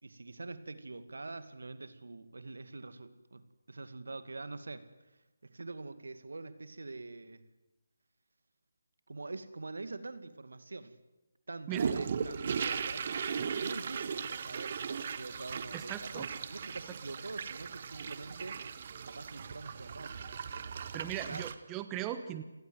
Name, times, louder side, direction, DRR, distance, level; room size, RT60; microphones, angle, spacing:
voice 1, 0.0-3.4 3.7-4.8 5.4-7.4 9.1-11.0 11.5-13.1 13.6-18.6 19.0-20.3 21.0-21.5, right 3 dB, 70° right, 12 dB, 2.3 m, -45 dB
sound 1, 11.7-21.5, right 6 dB, 40° right, 1.6 m, -38 dB
voice 2, 15.7-16.2 20.9-22.4, right 11 dB, 15° right, 11 dB, 1.2 m, -38 dB
29.0 x 19.0 x 8.0 m, 1.0 s
figure-of-eight pair, 155°, 0 cm